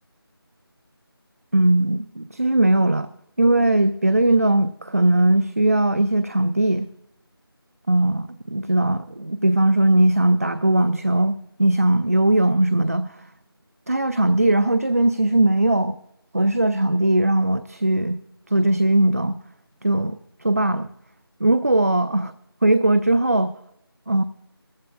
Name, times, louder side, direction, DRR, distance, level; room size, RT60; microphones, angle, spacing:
voice 1, 1.5-3.1 3.4-6.9 7.9-13.3 13.9-16.0 16.3-18.2 18.5-19.4 19.8-20.9 21.4-22.3 22.6-23.5 24.1-24.2, right 1 dB, 40° right, 11 dB, 0.4 m, -19 dB
19.5 x 14.5 x 2.4 m, 0.79 s
figure-of-eight pair, 175°, 13 cm